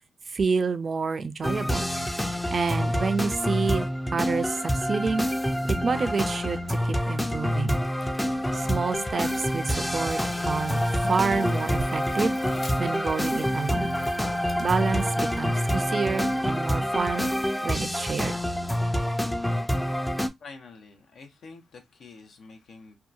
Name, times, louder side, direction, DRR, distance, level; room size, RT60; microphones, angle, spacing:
voice 1, 0.3-1.9 2.5-5.3 5.6-7.8 8.5-10.2 10.5-14.0 14.6-17.3 17.6-18.4, right 5 dB, 50° right, 0.4 m, -28 dB
sound 1, 1.4-20.3, equal, 10° left, 0.4 m, -27 dB
sound 2, 7.4-13.1, left 3 dB, 30° left, 0.9 m, -46 dB
sound 3, 10.1-16.7, left 2 dB, 50° left, 1.1 m, -50 dB
voice 2, 20.4-23.0, left 4 dB, 70° left, 0.7 m, -47 dB
2.8 x 2.3 x 2.4 m
cardioid pair, 55°, 0 cm